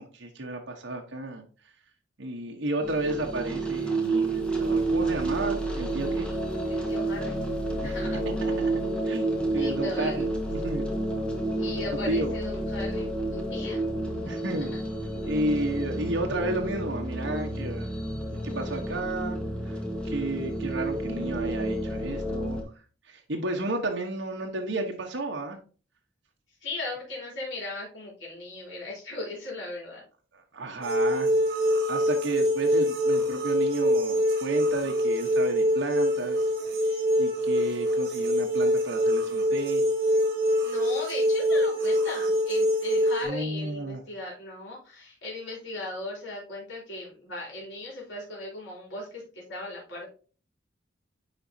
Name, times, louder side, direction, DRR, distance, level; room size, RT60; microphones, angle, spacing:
voice 1, 0.0-1.4 2.2-6.3 7.7-7.9 8.4-8.7 9.0-10.9 12.1-12.3 14.2-14.8 15.2-17.9 18.4-19.4 19.6-19.8 20.0-22.6 23.1-25.6 30.3-31.3 31.9-36.4 36.8-39.8 43.2-44.0, right 1 dB, 75° right, 1 dB, 1.1 m, -32 dB
sound 1, 2.8-22.6, right 2 dB, 5° left, 1.4 m, -30 dB
voice 2, 6.7-7.5 7.8-8.2 9.5-10.3 11.6-13.8 14.2-14.3 14.6-14.8 15.1-15.2 26.6-30.0 40.6-50.1, left 2 dB, 80° left, -4 dB, 3.2 m, -38 dB
sound 2, 30.8-43.2, equal, 55° right, 2.5 m, -24 dB
9.6 x 4.1 x 2.7 m, 0.37 s
head